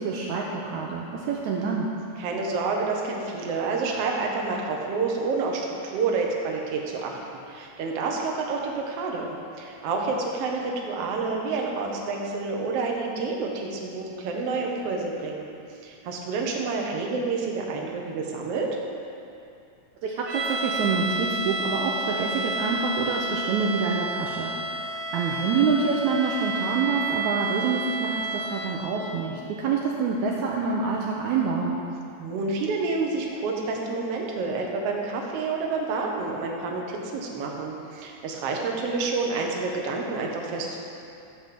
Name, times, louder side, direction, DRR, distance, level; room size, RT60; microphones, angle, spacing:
voice 1, 0.0-1.9 20.0-31.8, right 5 dB, 90° right, -2 dB, 1.6 m, -27 dB
voice 2, 2.2-7.2 7.5-15.5 15.8-18.8 32.2-40.8, right 4 dB, 70° right, 0 dB, 1.4 m, -29 dB
sound 1, 20.3-29.0, right 2 dB, 55° right, 3.6 m, -30 dB
12.5 x 4.2 x 7.7 m, 2.6 s
omnidirectional pair, 4.3 m